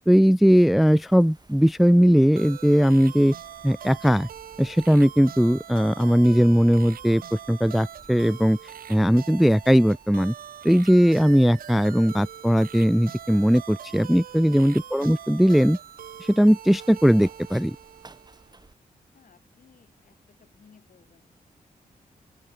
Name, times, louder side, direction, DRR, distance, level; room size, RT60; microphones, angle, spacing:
voice 1, 0.1-3.3 3.6-4.3 4.6-8.6 8.9-10.3 10.6-15.8 16.2-17.8, equal, ahead, 0.3 m, -19 dB
Wind, 0.8-18.7, right 3 dB, 25° right, 5.9 m, -56 dB
sound 1, 2.4-18.5, right 9 dB, 70° right, 0.6 m, -43 dB
voice 2, 19.1-21.2, left 6 dB, 60° left, 6.0 m, -58 dB
open air
cardioid pair, 85°, 15 cm